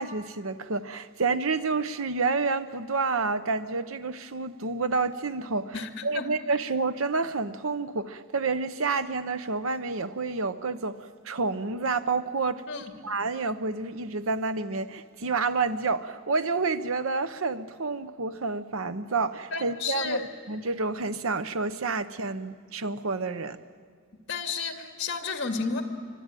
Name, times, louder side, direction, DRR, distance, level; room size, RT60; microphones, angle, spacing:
voice 1, 0.0-5.7 6.0-12.6 13.0-23.6, right 4 dB, 70° right, 0.8 m, -29 dB
voice 2, 5.7-6.3 12.7-12.8 19.5-20.2 24.3-25.8, left 4 dB, 55° left, 2.2 m, -31 dB
25.5 x 24.0 x 9.1 m
head